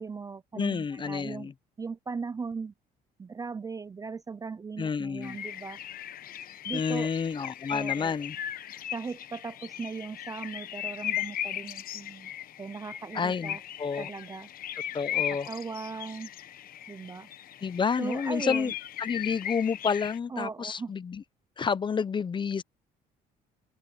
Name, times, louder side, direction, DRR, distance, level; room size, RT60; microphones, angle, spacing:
voice 1, 0.0-1.5 1.8-2.7 3.2-5.8 6.6-7.1 7.7-8.1 8.9-12.3 12.6-13.6 14.0-14.5 15.5-16.3 16.9-17.3 18.0-18.7 20.3-20.9, right 4 dB, 20° right, 0.4 m, -38 dB
voice 2, 0.5-1.5 4.8-5.4 6.7-8.4 13.1-14.1 14.9-15.5 17.6-21.2 21.6-22.6, left 6 dB, 30° left, 0.7 m, -30 dB
sound 1, 5.2-20.2, left 11 dB, 60° left, 1.2 m, -37 dB
open air
cardioid pair, 110°, 17 cm